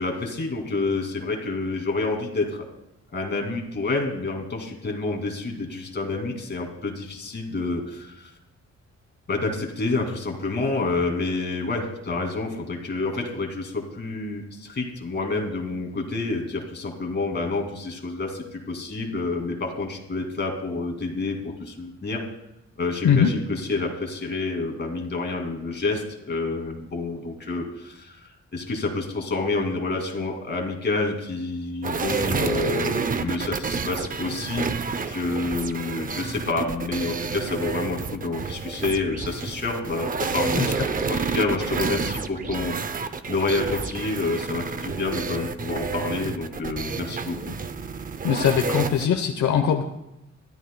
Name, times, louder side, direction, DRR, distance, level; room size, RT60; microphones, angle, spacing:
voice 1, 0.0-2.6 3.1-8.3 9.3-22.2 22.8-34.7 35.0-47.4, left 3 dB, 35° left, 1 dB, 2.4 m, -28 dB
sound 1, 31.8-49.1, right 5 dB, 30° right, 0.5 m, -29 dB
voice 2, 48.2-49.8, left 8 dB, 75° left, 5 dB, 0.9 m, -21 dB
21.5 x 13.5 x 2.2 m, 0.89 s
wide cardioid pair, 175°, 29 cm